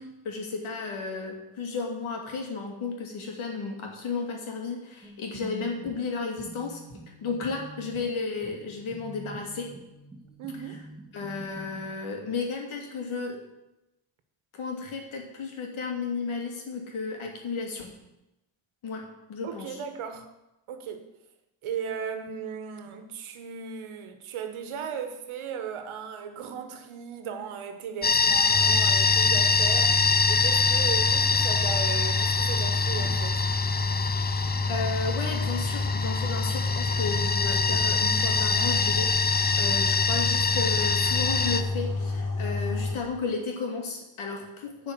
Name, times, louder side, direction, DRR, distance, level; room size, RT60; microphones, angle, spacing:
voice 1, 0.0-6.8 7.2-9.7 11.1-13.4 14.5-17.9 18.8-19.8 33.9-34.0 34.4-44.9, left 4 dB, 75° left, 2.6 m, -33 dB
sound 1, 5.0-11.9, right 1 dB, ahead, 2.3 m, -46 dB
voice 2, 10.4-10.8 19.4-20.3 20.7-21.1 21.6-33.4, right 7 dB, 80° right, 1.4 m, -36 dB
sound 2, 28.0-41.6, left 4 dB, 20° left, 0.6 m, -25 dB
sound 3, 28.5-43.0, left 3 dB, 40° left, 2.2 m, -29 dB
11.0 x 5.0 x 8.0 m
cardioid pair, 95°, 49 cm